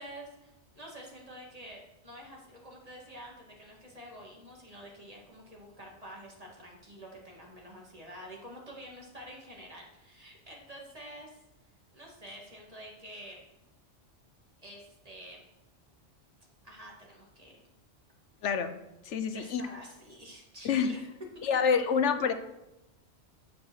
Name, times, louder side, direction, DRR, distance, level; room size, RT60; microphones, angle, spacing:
voice 1, 0.0-11.4 11.9-13.4 14.6-15.5 16.6-17.6 19.3-21.1 21.3-21.5, equal, 35° right, -2 dB, 2.4 m, -48 dB
voice 2, 18.4-18.7 19.0-19.6 20.6-20.9 21.4-22.3, left 6 dB, 85° left, 9 dB, 1.1 m, -27 dB
8.8 x 7.6 x 6.4 m, 0.95 s
omnidirectional pair, 1.2 m